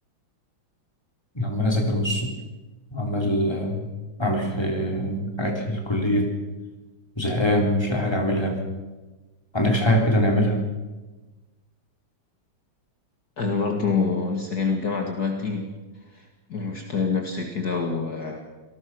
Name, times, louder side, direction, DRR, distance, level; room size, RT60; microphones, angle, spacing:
voice 1, 1.3-2.3 2.9-3.9 4.2-6.3 7.2-8.6 9.5-10.6, equal, 10° left, 1 dB, 3.9 m, -23 dB
voice 2, 13.4-15.8 16.1-18.4, left 4 dB, 50° left, 3 dB, 2.3 m, -26 dB
27.0 x 18.5 x 6.3 m, 1.2 s
omnidirectional pair, 2.3 m